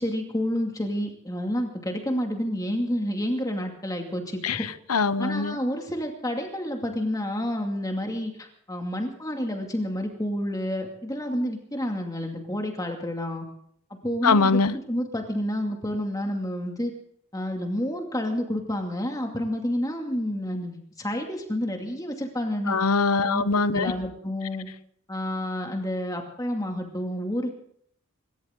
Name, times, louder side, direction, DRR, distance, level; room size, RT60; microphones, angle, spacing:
voice 1, 0.0-4.7 5.2-13.5 14.0-16.9 17.3-22.8 23.2-23.4 23.7-24.7 25.1-27.5, equal, 15° left, 2.4 m, -29 dB
voice 2, 4.4-5.6 14.2-14.7 22.7-23.9, left 4 dB, 90° left, 0.9 m, -23 dB
25.5 x 13.5 x 3.8 m
head